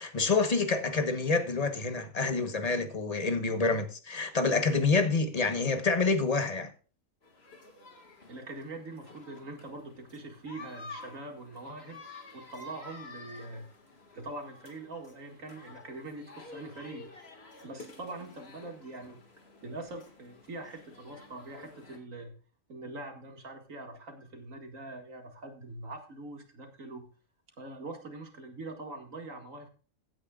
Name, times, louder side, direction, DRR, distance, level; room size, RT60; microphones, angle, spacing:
voice 1, 0.0-6.7, left 4 dB, 30° left, 1.2 m, -27 dB
sound 1, 7.2-22.0, left 3 dB, 50° left, 2.2 m, -51 dB
voice 2, 8.3-13.7 14.1-17.1 17.6-19.2 19.6-22.3 22.7-27.1 27.6-29.7, right 2 dB, 75° right, 2.6 m, -43 dB
15.5 x 9.7 x 2.4 m
omnidirectional pair, 1.4 m